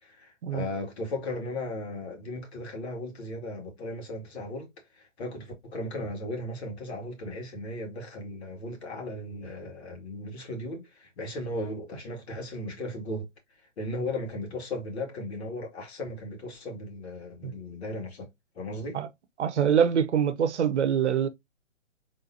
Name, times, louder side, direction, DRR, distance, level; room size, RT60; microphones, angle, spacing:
voice 1, 0.0-4.7 5.0-13.3 13.8-18.3 18.6-19.0, left 1 dB, 60° left, 2.3 m, -36 dB
voice 2, 19.4-21.3, right 8 dB, 65° right, 0.8 m, -24 dB
4.0 x 3.7 x 2.7 m
hypercardioid pair, 145°, 37 cm